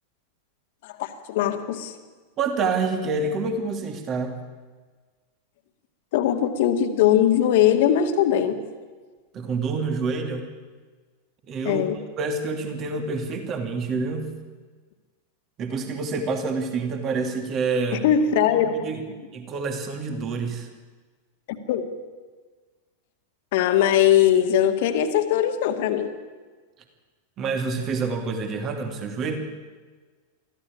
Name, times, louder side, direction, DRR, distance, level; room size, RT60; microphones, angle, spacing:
voice 1, 0.8-2.0 6.1-8.6 11.6-12.0 17.9-18.9 21.5-21.9 23.5-26.1, left 10 dB, 50° left, 8 dB, 2.0 m, -21 dB
voice 2, 2.4-4.4 9.3-10.5 11.5-11.8 12.2-14.3 15.6-18.0 18.8-19.0 19.3-20.7 27.4-29.4, right 4 dB, 30° right, 6 dB, 2.8 m, -27 dB
23.0 x 15.0 x 8.7 m, 1.4 s
figure-of-eight pair, 90°, 0 cm